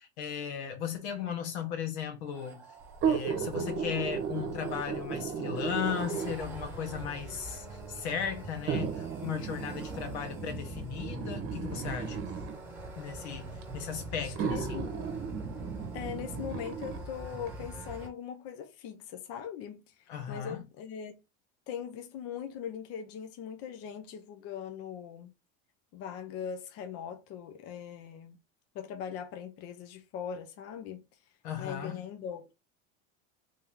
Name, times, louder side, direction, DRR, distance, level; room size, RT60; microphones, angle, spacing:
voice 1, 0.0-2.7 3.0-12.2 12.5-12.6 13.0-14.9 20.1-20.6 31.4-32.0, left 8 dB, 85° left, 1.3 m, -36 dB
sound 1, 2.3-18.1, right 1 dB, 5° right, 1.4 m, -44 dB
sound 2, 2.9-6.6 7.5-7.6 8.7-12.6 13.6-13.7 14.4-17.0 17.5-17.6, right 7 dB, 40° right, 1.0 m, -35 dB
voice 2, 14.2-14.9 15.9-21.2 21.7-25.3 25.9-28.4 28.7-31.0 31.6-32.5, left 8 dB, 45° left, 0.6 m, -40 dB
3.4 x 2.7 x 3.5 m
supercardioid pair, 135°, 32 cm